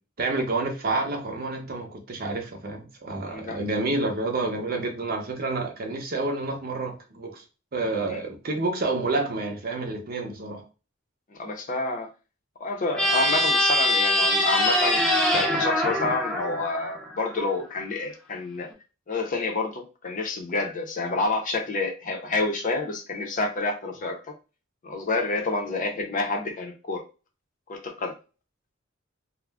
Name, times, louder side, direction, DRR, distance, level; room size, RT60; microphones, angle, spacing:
voice 1, 0.2-7.4 7.7-10.6, right 2 dB, 50° right, 3 dB, 0.7 m, -29 dB
voice 2, 3.3-3.6 8.1-8.2 11.3-12.1 12.6-18.7 19.1-24.3 24.8-27.0 27.7-28.2, left 3 dB, 40° left, 3 dB, 0.6 m, -29 dB
sound 1, 12.9-17.4, left 1 dB, 5° left, 0.6 m, -23 dB
2.4 x 2.1 x 3.3 m, 0.32 s
head